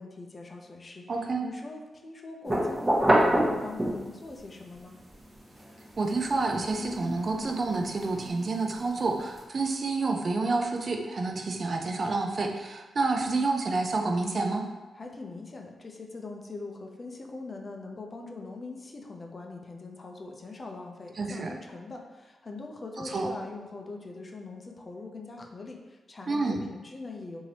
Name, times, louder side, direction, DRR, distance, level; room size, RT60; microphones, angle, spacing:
voice 1, 0.0-1.1 1.4-5.0 15.0-27.4, left 3 dB, 40° left, 2 dB, 0.5 m, -42 dB
voice 2, 1.1-1.5 6.0-14.6 21.2-21.5 23.0-23.3 26.3-26.6, right 3 dB, 55° right, 3 dB, 0.4 m, -29 dB
sound 1, 2.4-4.3 4.8-9.4, right 1 dB, 25° right, 0.9 m, -28 dB
3.1 x 2.7 x 2.8 m, 1.3 s
cardioid pair, 55°, 0 cm